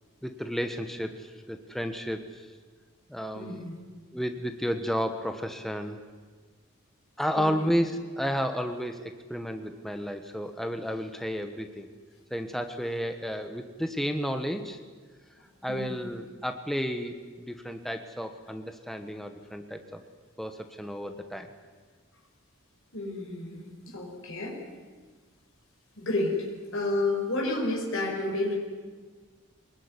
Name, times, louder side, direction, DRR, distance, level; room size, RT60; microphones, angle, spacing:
voice 1, 0.2-2.5 3.1-3.7 4.1-6.0 7.2-11.9 12.3-14.8 15.6-20.0 20.4-21.5, equal, ahead, 6 dB, 1.2 m, -32 dB
voice 2, 3.3-3.7 7.3-7.5 15.7-15.9 22.9-24.6 26.0-26.3 26.7-28.6, left 2 dB, 70° left, -1 dB, 5.2 m, -30 dB
24.5 x 20.0 x 9.8 m, 1.4 s
head